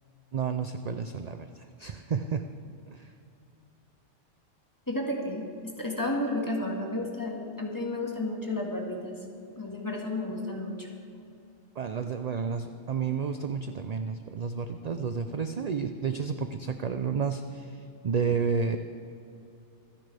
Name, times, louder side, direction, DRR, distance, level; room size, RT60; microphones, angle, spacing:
voice 1, 0.3-3.1 11.8-17.8 18.0-18.8, right 6 dB, 50° right, 8 dB, 0.5 m, -31 dB
voice 2, 4.9-9.1 9.6-10.9, left 1 dB, 15° left, -1 dB, 1.8 m, -32 dB
25.5 x 10.5 x 3.4 m, 2.7 s
omnidirectional pair, 1.2 m